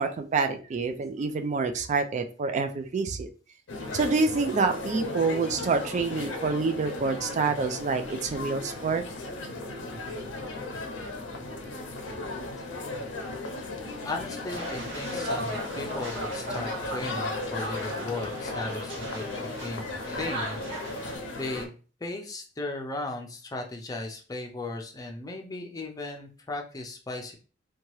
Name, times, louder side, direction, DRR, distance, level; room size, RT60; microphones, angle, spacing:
voice 1, 0.0-3.3 3.9-9.0, right 4 dB, 40° right, 7 dB, 0.3 m, -27 dB
sound 1, 3.7-21.7, left 2 dB, 80° left, 0.6 m, -36 dB
voice 2, 14.0-19.2 19.6-21.1 21.4-21.7 22.0-27.4, left 2 dB, 20° left, 2 dB, 0.5 m, -36 dB
sound 2, 14.5-21.2, right 1 dB, 75° right, 0.8 m, -37 dB
2.8 x 2.3 x 3.0 m, 0.38 s
head